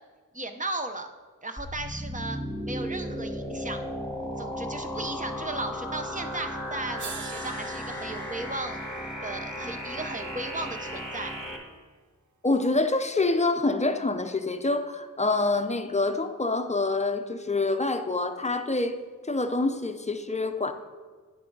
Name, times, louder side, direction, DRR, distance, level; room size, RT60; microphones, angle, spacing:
voice 1, 0.3-1.1 1.4-3.8 4.4-8.8 9.2-11.3, right 2 dB, 25° right, 7 dB, 0.7 m, -36 dB
sound 1, 1.6-11.6, equal, ahead, 2.1 m, -35 dB
sound 2, 6.4-6.5 7.0-11.2 12.5-12.6, right 5 dB, 60° right, 0.8 m, -46 dB
voice 2, 12.4-19.0 19.3-20.7, left 2 dB, 20° left, 7 dB, 0.6 m, -26 dB
10.0 x 8.2 x 3.9 m, 1.5 s
wide cardioid pair, 110°, 33 cm